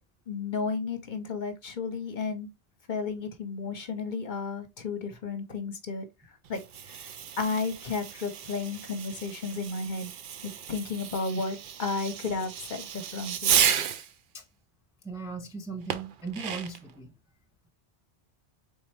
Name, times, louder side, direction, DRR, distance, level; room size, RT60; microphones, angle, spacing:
voice 1, 0.3-2.5 2.9-6.1 6.5-10.1 10.7-13.6, left 4 dB, 50° left, 0.8 m, -33 dB
Fireworks, 6.4-14.1 15.9-16.9, right 8 dB, 60° right, 0.6 m, -32 dB
voice 2, 15.0-17.1, right 4 dB, 5° right, 0.5 m, -38 dB
4.2 x 3.5 x 3.2 m
omnidirectional pair, 1.1 m